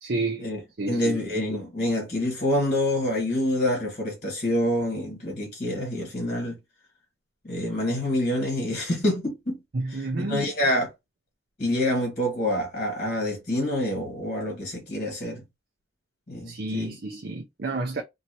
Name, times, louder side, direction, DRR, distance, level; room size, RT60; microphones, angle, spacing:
voice 1, 0.0-0.4 0.8-1.2 9.7-10.5 16.4-18.0, right 2 dB, 55° right, 0.6 m, -30 dB
voice 2, 0.9-6.6 7.4-9.6 9.9-10.9 11.6-15.4 16.3-16.9, left 1 dB, 35° left, 1.6 m, -27 dB
2.8 x 2.7 x 2.8 m
head